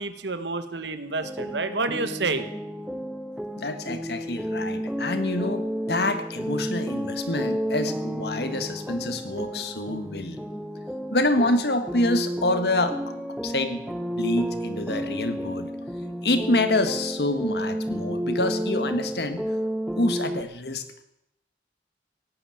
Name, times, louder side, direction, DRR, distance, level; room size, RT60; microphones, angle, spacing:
voice 1, 0.0-2.5, right 3 dB, 85° right, 10 dB, 1.5 m, -29 dB
sound 1, 1.2-20.4, equal, ahead, 0.9 m, -31 dB
voice 2, 3.6-10.4 11.1-13.0 13.4-13.8 14.2-15.7 16.2-19.5 20.0-21.0, left 2 dB, 65° left, 9 dB, 1.6 m, -27 dB
17.5 x 9.2 x 9.1 m, 0.83 s
head